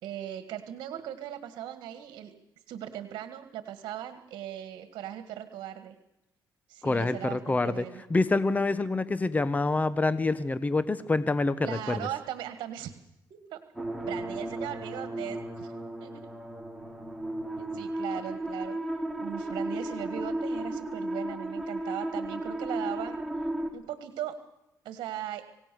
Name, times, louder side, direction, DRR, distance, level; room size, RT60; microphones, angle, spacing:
voice 1, 0.0-2.3 2.7-5.9 6.7-8.0 11.6-12.9 13.3-13.6 14.0-15.7 16.0-16.3 17.5-18.8 19.2-23.2 23.7-24.4 24.9-25.5, right 11 dB, 80° right, 10 dB, 1.8 m, -38 dB
voice 2, 6.8-12.1, left 3 dB, 20° left, 14 dB, 1.1 m, -27 dB
sound 1, 13.7-23.7, right 1 dB, ahead, 4.3 m, -34 dB
26.5 x 17.5 x 7.0 m, 0.93 s
cardioid pair, 80°, 7 cm